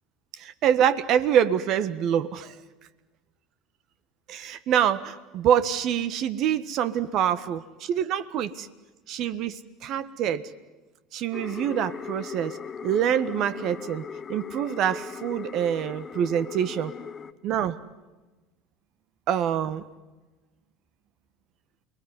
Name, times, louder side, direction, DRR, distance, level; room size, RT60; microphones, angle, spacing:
voice 1, 0.4-2.6 4.3-8.7 9.1-10.5 11.1-12.6 12.8-16.9 17.4-17.8 19.3-19.8, right 9 dB, 50° right, 15 dB, 1.4 m, -25 dB
sound 1, 11.3-17.3, left 6 dB, 30° left, 1.2 m, -38 dB
29.0 x 20.5 x 9.7 m, 1.2 s
hypercardioid pair, 75°, 0 cm